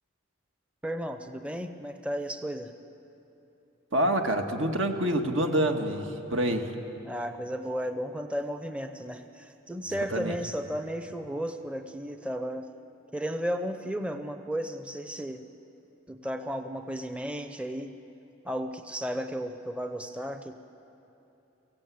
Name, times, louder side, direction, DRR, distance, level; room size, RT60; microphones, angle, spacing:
voice 1, 0.8-2.7 7.0-12.7 13.1-15.5 16.1-18.0 18.4-20.5, equal, 5° right, 7 dB, 0.6 m, -34 dB
voice 2, 3.9-6.7 10.1-10.4, right 1 dB, 75° right, 4 dB, 1.7 m, -27 dB
24.0 x 16.0 x 8.4 m, 2.9 s
head